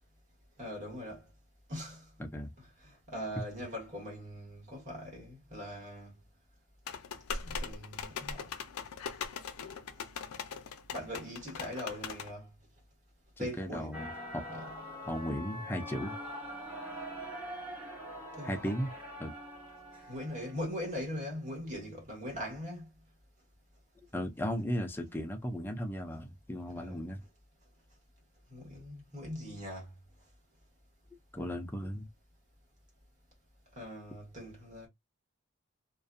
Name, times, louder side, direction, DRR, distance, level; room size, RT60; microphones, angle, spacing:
voice 1, 0.6-1.2 1.7-2.1 2.6-6.1 7.4-8.4 10.9-12.5 13.4-14.0 14.5-14.7 18.3-18.7 20.1-22.9 26.7-27.1 28.5-29.9 33.7-34.9, equal, 35° right, 1.4 m, -41 dB
voice 2, 2.2-2.5 13.4-14.1 14.3-14.4 15.1-16.2 18.4-18.9 19.2-19.3 24.1-27.2 31.3-32.1, equal, 10° left, 0.3 m, -36 dB
sound 1, 6.9-12.3, left 5 dB, 90° left, 0.4 m, -40 dB
sound 2, 13.9-20.6, equal, 10° right, 0.7 m, -43 dB
2.4 x 2.3 x 2.4 m
head